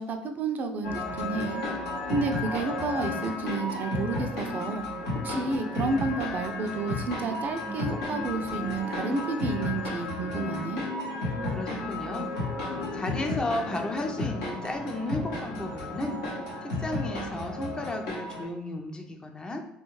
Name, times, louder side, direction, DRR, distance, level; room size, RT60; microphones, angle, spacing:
voice 1, 0.0-1.6 2.1-4.9 5.2-10.8, right 4 dB, 50° right, 5 dB, 0.3 m, -31 dB
sound 1, 0.8-18.4, left 2 dB, 80° left, 0.8 m, -33 dB
Marimba xylophone, 1.6-2.6 3.0-4.8 5.3-6.2 6.7-12.1 12.7-13.5 14.1-14.3, left 4 dB, 40° left, 1.0 m, -40 dB
voice 2, 11.5-12.3 12.9-16.2 16.6-19.6, left 1 dB, 20° left, 4 dB, 0.4 m, -33 dB
2.4 x 2.2 x 3.0 m, 0.80 s
supercardioid pair, 75°, 4 cm